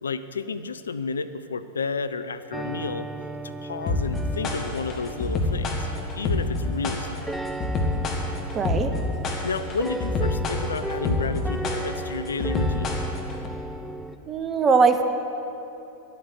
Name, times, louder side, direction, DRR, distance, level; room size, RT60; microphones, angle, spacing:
voice 1, 0.0-3.1 3.4-5.9 6.2-7.3 9.4-12.9, left 4 dB, 70° left, 12 dB, 0.4 m, -31 dB
sound 1, 2.5-14.2, right 1 dB, ahead, 0.4 m, -36 dB
sound 2, 3.9-13.5, left 2 dB, 30° left, 1.6 m, -27 dB
voice 2, 8.5-8.9 14.3-15.0, right 5 dB, 25° right, 8 dB, 0.8 m, -20 dB
11.5 x 8.4 x 8.1 m, 3.0 s
figure-of-eight pair, 90°, 0 cm